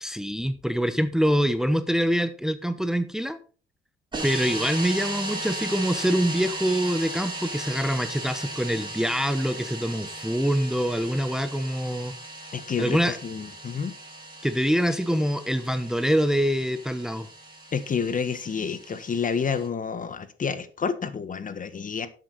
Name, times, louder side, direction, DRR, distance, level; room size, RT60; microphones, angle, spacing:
voice 1, 0.0-3.4 4.2-12.1 12.8-13.2 14.4-17.3, equal, 5° right, 10 dB, 1.0 m, -25 dB
sound 1, 4.1-19.7, right 2 dB, 25° right, 6.6 m, -37 dB
voice 2, 12.5-14.0 17.7-22.1, left 6 dB, 40° left, 12 dB, 1.5 m, -29 dB
11.5 x 8.2 x 4.2 m, 0.38 s
cardioid pair, 90°, 20 cm